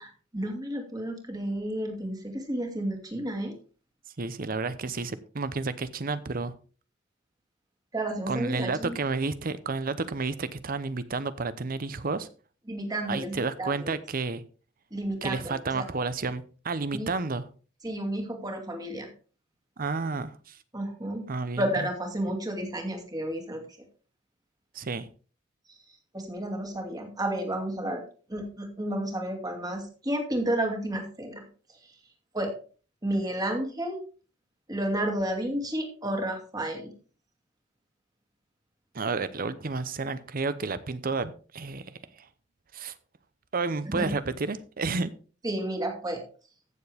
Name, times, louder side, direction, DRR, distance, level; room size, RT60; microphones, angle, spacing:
voice 1, 0.0-3.5 7.9-9.0 12.7-13.9 14.9-15.9 16.9-17.1 17.8-19.1 20.7-21.3 21.6-23.6 25.7-25.8 26.1-28.0 28.3-31.9 32.3-32.5 33.0-34.0 34.7-36.9 43.9-44.1 45.4-46.2, right 1 dB, 20° right, 3 dB, 2.4 m, -31 dB
voice 2, 4.2-6.5 8.3-12.3 13.1-14.4 15.2-17.4 19.8-20.6 21.3-21.6 24.7-25.1 38.9-42.3 42.7-43.0 43.5-45.1, right 3 dB, 50° right, 14 dB, 0.7 m, -31 dB
14.5 x 7.1 x 3.4 m, 0.38 s
head